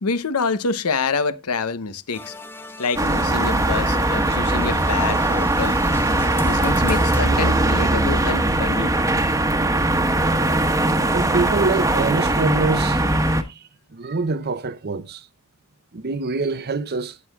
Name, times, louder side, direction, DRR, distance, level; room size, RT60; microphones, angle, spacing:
voice 1, 0.0-2.3 2.8-5.8 6.4-8.9, left 4 dB, 85° left, 0.8 m, -26 dB
sound 1, 2.1-7.3, left 1 dB, 10° left, 0.5 m, -34 dB
sound 2, 3.0-13.4, right 1 dB, 15° right, 1.2 m, -20 dB
voice 2, 11.1-15.3 15.9-17.2, right 3 dB, 45° right, 0.7 m, -25 dB
18.0 x 6.5 x 2.3 m
head